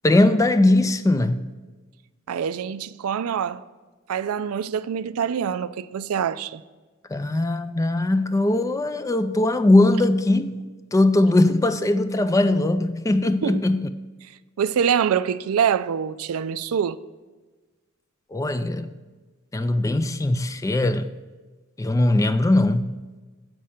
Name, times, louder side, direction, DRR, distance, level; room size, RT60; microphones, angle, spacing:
voice 1, 0.0-1.4 7.1-10.6 10.9-13.9 18.3-18.9 19.5-21.1 21.8-22.9, left 2 dB, 15° left, 0.3 m, -20 dB
voice 2, 2.3-3.6 4.1-6.6 13.4-13.6 14.6-17.0, right 8 dB, 80° right, 0.4 m, -25 dB
7.5 x 5.6 x 7.4 m
head